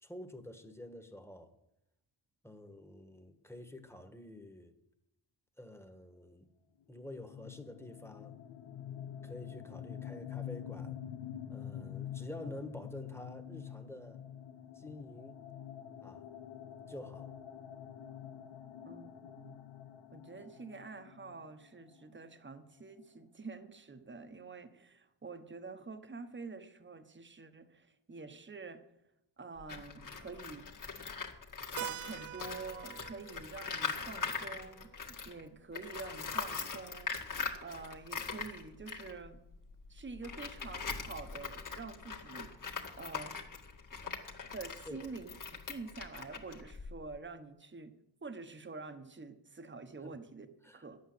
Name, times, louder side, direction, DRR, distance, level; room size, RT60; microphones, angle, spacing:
voice 1, 0.0-1.5 2.4-4.7 5.6-6.5 6.9-8.3 9.2-11.0 11.5-14.2 14.7-15.4 16.0-16.3 16.9-17.3 44.9-45.1 50.0-50.2 50.6-50.9, left 1 dB, 5° left, 8 dB, 1.5 m, -48 dB
sound 1, 6.9-22.5, left 9 dB, 85° left, 1.0 m, -47 dB
voice 2, 18.8-19.6 20.1-28.9 29.4-30.7 31.6-39.4 39.9-42.5 43.0-43.5 44.5-45.3 45.7-47.9 48.2-50.5 50.7-51.0, right 4 dB, 25° right, 9 dB, 1.2 m, -47 dB
Tools, 29.6-35.4 35.7-47.2, left 5 dB, 40° left, 2.0 m, -42 dB
Keyboard (musical), 31.8-36.2, right 13 dB, 80° right, 0.5 m, -47 dB
11.0 x 8.6 x 7.9 m, 0.84 s
cardioid pair, 80°, 46 cm